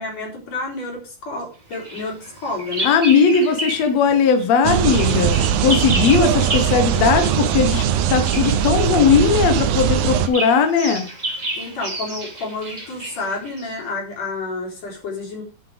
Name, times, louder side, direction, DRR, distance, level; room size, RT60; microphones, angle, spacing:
voice 1, 0.0-2.9 11.5-15.4, left 3 dB, 45° left, -1 dB, 4.9 m, -30 dB
Bird vocalization bird call bird song, 1.7-4.0 4.3-13.8, right 1 dB, 15° right, 1.7 m, -31 dB
voice 2, 2.8-7.8 8.1-11.1, left 6 dB, 70° left, 8 dB, 1.6 m, -18 dB
sound 1, 4.6-10.3, right 9 dB, 80° right, 2.6 m, -20 dB
11.5 x 7.3 x 4.9 m, 0.35 s
omnidirectional pair, 4.4 m